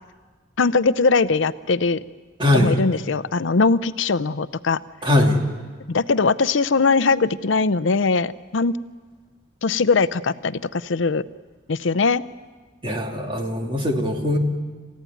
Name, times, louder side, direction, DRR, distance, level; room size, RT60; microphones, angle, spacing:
voice 1, 0.6-2.0 2.5-4.8 5.9-8.8 9.6-11.2 11.7-12.2, left 4 dB, 85° left, 15 dB, 0.6 m, -20 dB
voice 2, 2.4-2.8 5.0-5.4 12.8-14.4, left 1 dB, 25° right, 2 dB, 2.4 m, -20 dB
28.0 x 16.0 x 9.4 m, 1.4 s
head